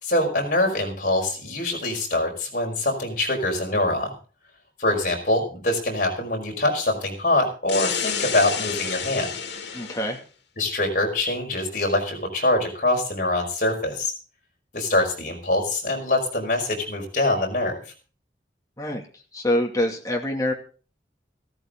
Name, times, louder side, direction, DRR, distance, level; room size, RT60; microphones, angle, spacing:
voice 1, 0.0-4.1 4.8-9.3 10.6-14.1 14.7-17.8, left 2 dB, 50° left, 0 dB, 5.3 m, -24 dB
sound 1, 7.7-10.2, left 7 dB, 90° left, 2.2 m, -29 dB
voice 2, 9.7-10.2 18.8-19.0 19.3-20.5, left 1 dB, 20° left, 1 dB, 2.5 m, -25 dB
15.0 x 13.5 x 3.9 m, 0.38 s
head